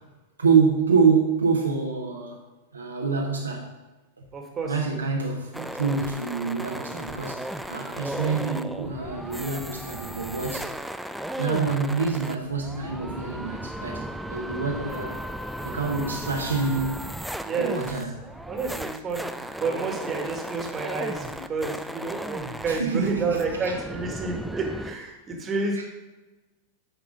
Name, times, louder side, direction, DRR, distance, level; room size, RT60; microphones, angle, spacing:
voice 1, 0.4-2.4 2.7-3.7 4.2-4.3 4.7-7.4 7.7-10.7 11.4-15.2 15.6-17.0 17.6-18.1 22.7-23.7 25.8-25.9, right 5 dB, 75° right, 0 dB, 0.9 m, -26 dB
voice 2, 4.3-4.7 17.4-17.7 18.5-19.3 19.6-25.8, right 4 dB, 25° right, 1 dB, 1.6 m, -29 dB
sound 1, 5.5-24.9, right 1 dB, ahead, 0.4 m, -35 dB
9.1 x 4.8 x 5.0 m, 1.1 s
figure-of-eight pair, 90°, 0 cm